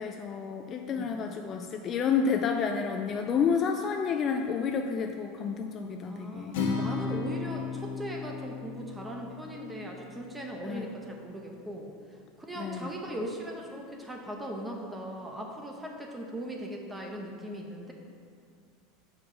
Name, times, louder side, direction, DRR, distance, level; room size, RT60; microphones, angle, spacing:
voice 1, 0.0-6.6 10.6-10.9 12.5-12.9, left 6 dB, 30° left, 4 dB, 0.3 m, -30 dB
voice 2, 6.1-6.5 6.7-11.9 12.4-17.9, right 1 dB, 10° right, 1 dB, 0.8 m, -39 dB
Acoustic guitar, 6.5-10.8, left 5 dB, 75° left, 1.5 m, -35 dB
7.2 x 4.7 x 5.0 m, 2.3 s
supercardioid pair, 150°, 0 cm